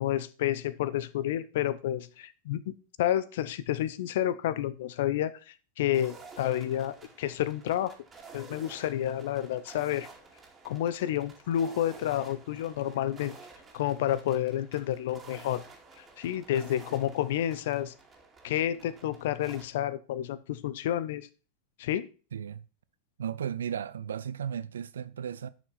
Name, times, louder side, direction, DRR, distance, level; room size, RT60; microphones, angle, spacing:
voice 1, 0.0-7.9 8.3-10.1 10.6-13.3 13.7-15.6 16.0-17.9 18.4-21.3 21.8-22.1, left 12 dB, 55° left, 0.7 m, -30 dB
sound 1, 5.9-19.7, right 4 dB, 20° right, 2.4 m, -51 dB
voice 2, 22.3-22.7 23.2-25.5, right 8 dB, 65° right, 0.5 m, -35 dB
11.0 x 6.2 x 4.2 m
figure-of-eight pair, 90°, 0 cm